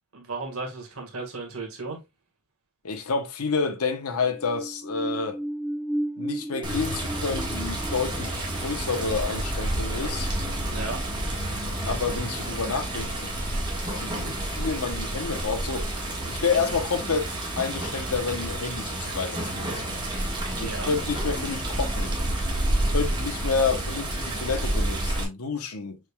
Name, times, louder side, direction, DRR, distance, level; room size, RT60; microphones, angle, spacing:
voice 1, 0.1-2.0 10.7-11.0 20.6-20.9, right 3 dB, 80° right, 1.7 m, -35 dB
voice 2, 2.8-5.4 6.2-10.3 11.9-13.3 13.9-15.9 16.3-19.9 20.6-22.1 22.7-26.0, left 5 dB, 90° left, 1.0 m, -29 dB
sound 1, 4.3-10.6 10.9-11.0, right 1 dB, ahead, 0.6 m, -35 dB
Water, 6.6-25.2, right 1 dB, 20° right, 1.2 m, -29 dB
6.4 x 3.5 x 2.3 m
head